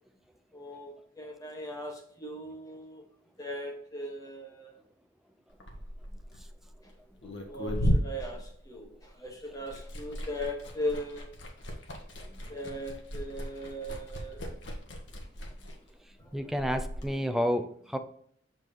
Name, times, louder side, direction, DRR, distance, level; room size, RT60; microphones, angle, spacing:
voice 1, 0.5-3.0 3.4-4.7 7.5-11.3 12.5-14.5, equal, 20° left, 1 dB, 1.4 m, -38 dB
Liquid, 5.5-9.2 9.5-17.1, equal, 70° left, 1.5 m, -35 dB
voice 2, 16.3-18.0, equal, ahead, 7 dB, 0.5 m, -30 dB
7.2 x 6.3 x 3.0 m, 0.63 s
head